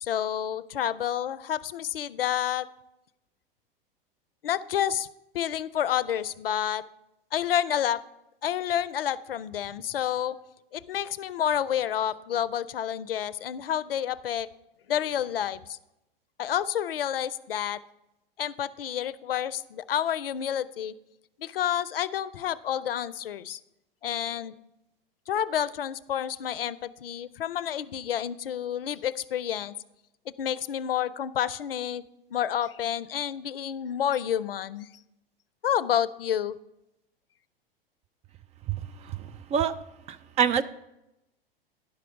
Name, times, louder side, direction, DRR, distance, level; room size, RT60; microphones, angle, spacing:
voice 1, 0.0-2.7 4.4-5.1 5.3-6.8 7.3-8.0 8.4-10.4 10.7-14.5 14.9-15.8 16.4-17.8 18.4-20.9 21.4-23.6 24.0-24.5 25.3-29.7 30.4-32.0 32.3-34.9 35.6-36.6, left 10 dB, 75° left, 18 dB, 0.5 m, -29 dB
voice 2, 40.1-40.6, right 7 dB, 25° right, 10 dB, 0.4 m, -24 dB
10.5 x 6.0 x 5.7 m, 0.89 s
figure-of-eight pair, 95°, 29 cm